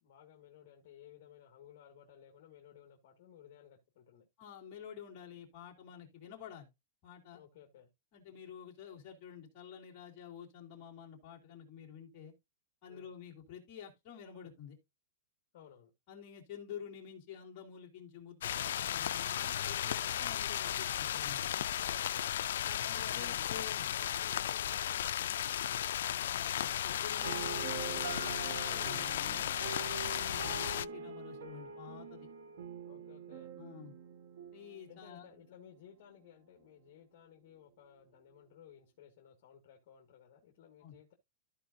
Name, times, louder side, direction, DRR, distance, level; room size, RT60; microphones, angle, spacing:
voice 1, 0.0-4.3 7.3-7.9 12.9-13.1 15.5-15.9 21.7-22.4 23.0-25.5 32.9-33.6 34.9-41.1, left 9 dB, 45° left, 1.8 m, -58 dB
voice 2, 4.4-6.7 7.0-7.4 8.1-12.3 12.8-14.8 16.1-21.5 22.6-23.8 26.1-29.5 29.9-32.3 33.6-33.9 34.5-35.3 40.8-40.9, left 8 dB, 30° left, 3.2 m, -50 dB
sound 1, 18.4-30.9, left 11 dB, 80° left, 0.3 m, -35 dB
sound 2, 27.2-35.2, right 6 dB, 70° right, 1.5 m, -44 dB
14.0 x 4.8 x 2.6 m
supercardioid pair, 175°, 0 cm